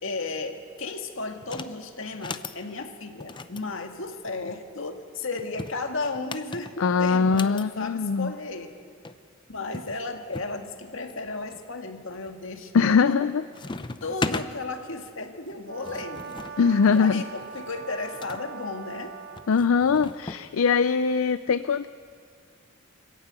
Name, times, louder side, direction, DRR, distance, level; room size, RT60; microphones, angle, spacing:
voice 1, 0.0-8.8 9.5-13.2 14.0-16.4 16.9-19.1, left 3 dB, 70° left, 4 dB, 1.9 m, -34 dB
sound 1, 1.4-1.8 2.1-2.6 3.2-4.6 5.4-7.7 8.8-8.9 9.0-9.2 9.7-10.5 11.1-11.6 12.1-12.5 12.8-13.3 13.5-14.5 15.5-18.4 19.4-20.4, left 3 dB, 25° left, 0.6 m, -37 dB
voice 2, 6.8-8.3 12.7-13.4 16.6-17.2 19.5-21.9, left 5 dB, 85° left, 13 dB, 0.5 m, -22 dB
Brass instrument, 15.6-19.5, right 6 dB, 50° right, 1.2 m, -41 dB
26.0 x 14.5 x 9.0 m, 2.2 s
head